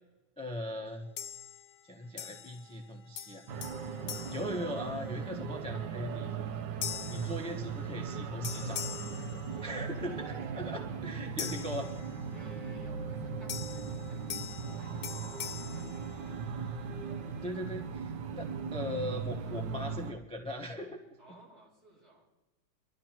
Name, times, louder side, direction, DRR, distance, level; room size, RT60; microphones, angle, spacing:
voice 1, 0.4-1.1 1.8-3.4 4.3-6.3 7.1-8.9 9.6-12.1 17.4-21.0 21.3-21.4, left 1 dB, 5° left, 3 dB, 0.8 m, -39 dB
sound 1, 1.2-1.8 2.2-2.9 3.2-5.3 5.8-6.1 6.8-8.1 8.4-10.1 11.4-12.5 13.5-16.7, left 9 dB, 70° left, 1.2 m, -43 dB
sound 2, 3.5-20.1, right 6 dB, 75° right, 1.4 m, -38 dB
voice 2, 9.5-11.4 12.3-16.4 18.2-18.6 21.2-22.3, right 2 dB, 60° right, -4 dB, 5.8 m, -59 dB
sound 3, 12.2-19.0, left 4 dB, 25° right, 2.5 m, -58 dB
24.5 x 12.5 x 2.9 m, 1.1 s
omnidirectional pair, 2.0 m